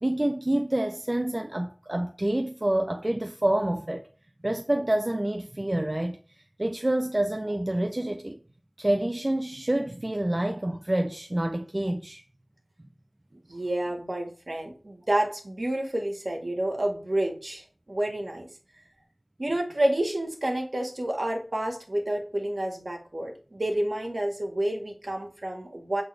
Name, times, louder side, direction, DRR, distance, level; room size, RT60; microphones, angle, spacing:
voice 1, 0.0-4.0 4.4-8.4 8.8-12.2, right 1 dB, 35° right, 0.6 m, -27 dB
voice 2, 13.3-18.5 19.4-26.0, right 1 dB, 60° right, 2.0 m, -29 dB
8.0 x 4.1 x 3.4 m
wide cardioid pair, 45°, 0 cm